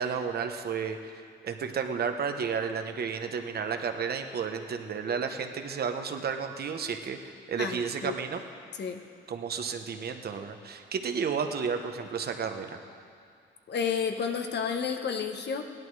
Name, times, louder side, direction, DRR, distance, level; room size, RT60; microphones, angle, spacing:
voice 1, 0.0-8.4 9.3-12.8, right 6 dB, 50° right, 6 dB, 1.0 m, -32 dB
voice 2, 7.6-8.1 8.8-9.0 13.7-15.6, left 6 dB, 60° left, 5 dB, 1.2 m, -31 dB
16.5 x 11.0 x 4.8 m, 2.3 s
cardioid pair, 90°, 20 cm